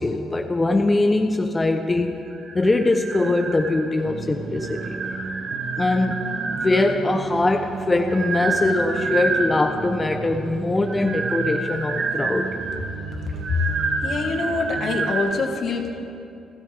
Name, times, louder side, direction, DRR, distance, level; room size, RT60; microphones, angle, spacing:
voice 1, 0.0-2.2 2.5-5.0 5.8-6.3 6.6-12.6, left 2 dB, 20° left, 5 dB, 0.9 m, -22 dB
sound 1, 2.3-4.1 4.5-7.0 7.7-9.8 10.8-15.3, right 3 dB, 55° right, 2.6 m, -28 dB
sound 2, 4.0-15.1, right 4 dB, 90° right, 1.5 m, -35 dB
voice 2, 14.0-15.9, left 4 dB, 60° left, 3 dB, 1.8 m, -25 dB
29.0 x 12.5 x 3.6 m, 2.7 s
cardioid pair, 90°, 0 cm